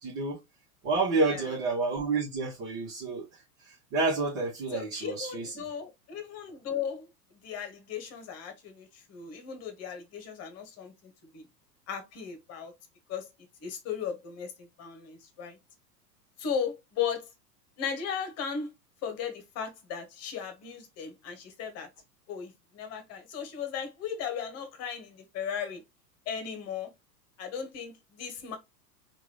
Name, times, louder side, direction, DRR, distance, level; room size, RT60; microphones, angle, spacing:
voice 1, 0.0-0.4 0.8-3.2 3.9-5.5, right 3 dB, 35° right, 1.5 m, -29 dB
voice 2, 1.2-1.5 4.7-7.1 7.4-11.5 11.9-12.7 13.1-13.3 13.6-15.6 16.4-17.3 17.8-18.7 19.0-21.9 22.3-25.8 26.3-26.9 27.4-28.6, left 7 dB, 30° left, 1.2 m, -36 dB
3.7 x 2.7 x 3.2 m
figure-of-eight pair, 95°, 49 cm